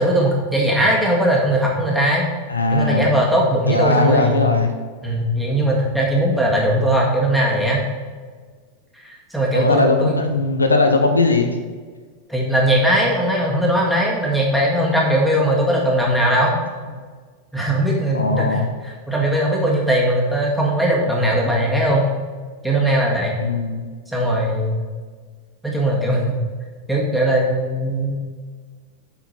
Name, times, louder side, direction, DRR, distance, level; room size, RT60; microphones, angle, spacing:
voice 1, 0.0-2.3 2.7-4.5 5.0-7.8 9.0-10.3 12.3-16.5 17.5-22.1 22.6-23.3 24.1-24.8 25.6-26.4 26.9-28.1, right 1 dB, ahead, -3 dB, 1.9 m, -19 dB
voice 2, 2.5-3.1 3.7-4.7 9.5-11.5 18.1-18.7 23.4-23.9, left 3 dB, 80° left, 5 dB, 0.7 m, -18 dB
7.9 x 5.9 x 4.2 m, 1.5 s
figure-of-eight pair, 90°, 0 cm